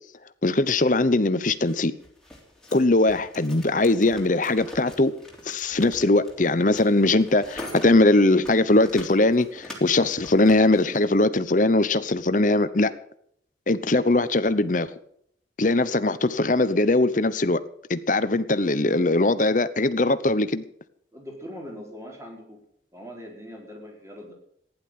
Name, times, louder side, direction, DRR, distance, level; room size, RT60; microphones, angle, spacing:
voice 1, 0.4-1.9 2.7-5.1 5.5-12.9 13.7-14.9 15.6-17.6 17.9-20.6, left 2 dB, 45° left, 13 dB, 0.9 m, -21 dB
sound 1, 1.6-11.0, left 1 dB, 5° left, 3.4 m, -43 dB
voice 2, 21.1-22.6 22.9-24.3, equal, 15° right, 0 dB, 4.4 m, -41 dB
15.5 x 11.0 x 7.6 m, 0.68 s
head